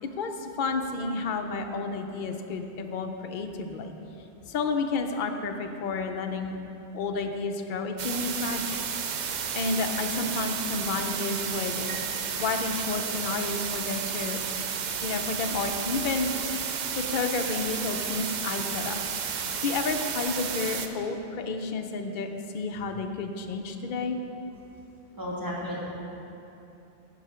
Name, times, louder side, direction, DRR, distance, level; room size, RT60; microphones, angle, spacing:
voice 1, 0.0-3.9 4.5-6.6 6.9-8.8 9.5-11.8 12.4-14.4 15.0-16.3 17.0-19.0 19.6-22.3 22.5-24.2, left 4 dB, 55° left, 5 dB, 0.7 m, -31 dB
sound 1, 8.0-20.9, right 7 dB, 55° right, 0.5 m, -32 dB
voice 2, 25.1-25.8, equal, 20° right, -5 dB, 1.5 m, -33 dB
9.8 x 5.4 x 4.9 m, 3.0 s
omnidirectional pair, 1.2 m